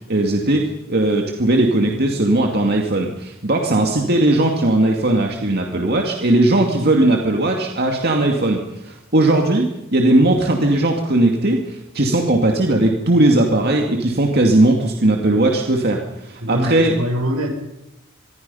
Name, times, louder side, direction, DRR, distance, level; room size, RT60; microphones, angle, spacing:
voice 1, 0.1-16.9, right 1 dB, 50° right, 2 dB, 2.2 m, -18 dB
voice 2, 16.4-17.5, equal, 80° right, 2 dB, 7.2 m, -23 dB
25.5 x 22.0 x 5.6 m, 0.86 s
head